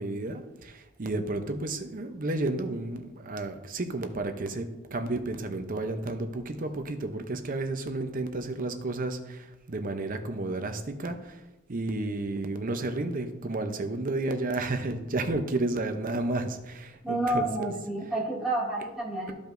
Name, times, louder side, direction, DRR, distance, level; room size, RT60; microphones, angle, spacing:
voice 1, 0.0-11.4 11.7-17.7, right 2 dB, 40° right, 7 dB, 0.7 m, -32 dB
voice 2, 17.0-19.3, right 1 dB, ahead, -7 dB, 2.3 m, -29 dB
13.5 x 5.1 x 2.6 m, 1.1 s
head